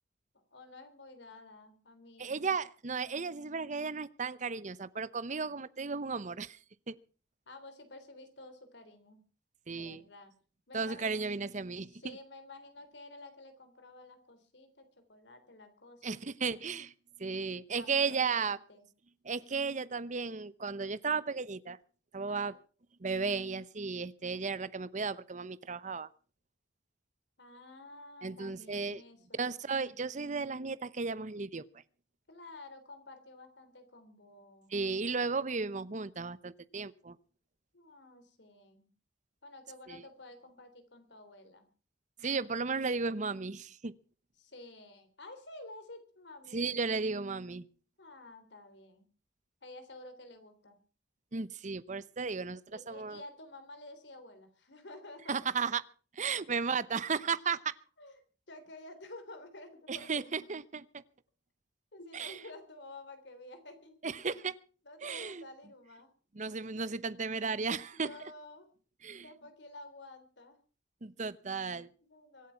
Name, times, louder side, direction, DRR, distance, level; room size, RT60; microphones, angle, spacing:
voice 1, 0.5-2.5 7.5-9.2 9.7-10.3 10.7-11.2 11.9-16.2 17.8-18.9 22.3-22.5 27.4-29.6 32.3-34.7 37.7-38.9 39.4-41.7 44.4-46.6 48.0-49.1 49.6-50.8 52.7-55.3 58.0-58.2 58.5-60.1 61.9-64.0 64.8-66.1 67.9-68.7 69.2-70.6 72.0-72.5, left 2 dB, 75° left, 8 dB, 3.5 m, -51 dB
voice 2, 2.2-6.6 6.9-7.0 9.7-10.0 10.7-12.2 16.0-16.9 17.2-18.6 19.2-21.8 22.1-22.5 23.0-26.1 28.2-29.0 29.3-31.7 34.7-37.2 39.9-40.0 42.2-43.9 46.5-47.7 51.3-53.2 55.3-55.8 56.1-57.7 59.9-61.0 62.1-62.4 64.0-64.5 65.0-65.4 66.3-68.1 69.0-69.3 71.0-71.9, right 5 dB, 45° right, 17 dB, 0.8 m, -34 dB
24.5 x 8.2 x 5.8 m, 0.40 s
head